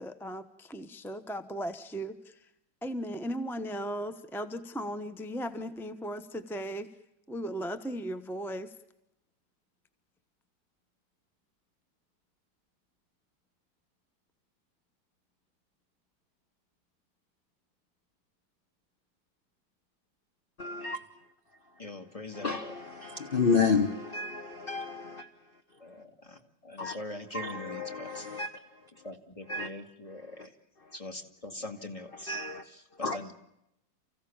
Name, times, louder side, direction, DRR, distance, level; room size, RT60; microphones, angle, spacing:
voice 1, 0.0-2.4 2.8-6.9 7.3-8.7, equal, ahead, 10 dB, 0.5 m, -37 dB
voice 2, 20.6-21.0 22.3-25.3 26.8-27.0 27.3-28.5 29.5-29.7 32.3-32.6 33.0-33.2, left 4 dB, 35° left, 8 dB, 1.0 m, -30 dB
voice 3, 21.8-22.8 25.8-28.3 29.0-30.5 30.9-32.4 32.6-33.3, left 2 dB, 20° left, 5 dB, 2.2 m, -42 dB
29.5 x 15.5 x 8.7 m, 0.83 s
omnidirectional pair, 2.0 m